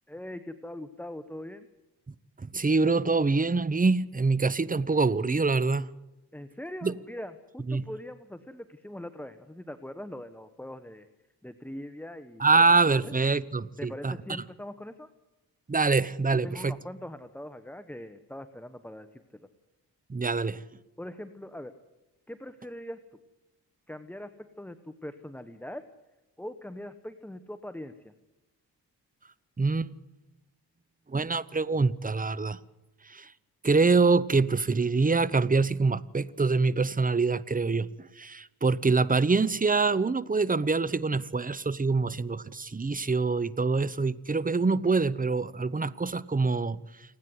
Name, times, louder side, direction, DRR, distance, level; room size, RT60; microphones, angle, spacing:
voice 1, 0.1-1.7 6.3-11.1 11.4-12.4 12.9-13.1 13.8-15.1 16.4-19.5 21.0-21.7 22.3-23.0 23.9-25.9 26.4-28.1, left 1 dB, 5° left, 1.2 m, -41 dB
voice 2, 2.4-5.9 6.8-6.9 7.7-7.9 12.4-14.2 15.7-16.8 20.1-20.6 29.6-29.9 31.1-32.6 33.1-33.3 33.6-46.8, right 4 dB, 20° right, 0.9 m, -25 dB
28.5 x 9.7 x 9.7 m
cardioid pair, 55°, 40 cm